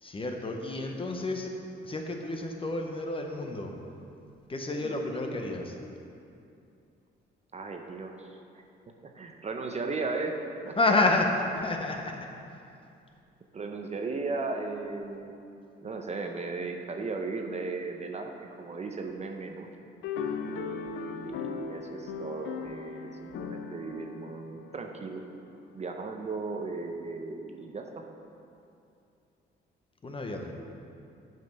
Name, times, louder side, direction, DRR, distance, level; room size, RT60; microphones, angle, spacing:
voice 1, 0.0-1.5 1.8-3.7 4.5-5.8 10.8-12.2 30.0-30.5, left 2 dB, 25° left, 2 dB, 0.8 m, -29 dB
voice 2, 7.5-8.3 9.1-10.8 13.5-15.4 15.8-19.7 20.4-25.2 25.7-28.0, right 3 dB, 35° right, 3 dB, 0.7 m, -36 dB
sound 1, 20.0-25.6, left 6 dB, 75° left, 0.5 m, -38 dB
7.5 x 5.4 x 5.4 m, 2.6 s
cardioid pair, 90°, 20 cm